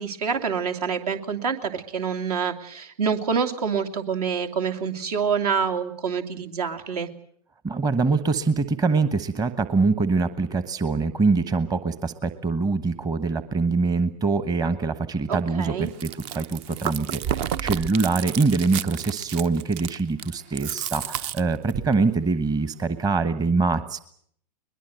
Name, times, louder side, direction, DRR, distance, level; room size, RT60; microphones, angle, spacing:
voice 1, 0.0-7.1 15.3-15.9, right 6 dB, 65° right, 5 dB, 2.8 m, -27 dB
voice 2, 7.6-24.0, right 4 dB, 20° right, 12 dB, 1.2 m, -24 dB
Chewing mastication, 15.9-21.9, right 9 dB, 45° right, 0.9 m, -31 dB
22.0 x 21.0 x 7.9 m, 0.64 s
hypercardioid pair, 105°, 21 cm